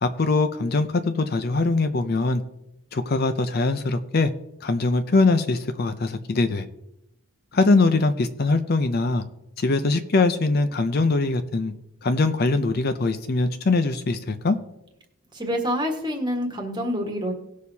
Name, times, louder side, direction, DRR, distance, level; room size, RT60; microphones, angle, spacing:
voice 1, 0.0-2.4 2.9-4.3 4.6-6.7 7.5-9.2 9.6-11.7 12.0-14.6, left 3 dB, 45° left, 9 dB, 0.5 m, -22 dB
voice 2, 15.3-17.3, equal, 20° right, 2 dB, 1.4 m, -27 dB
18.0 x 6.4 x 2.8 m, 0.88 s
head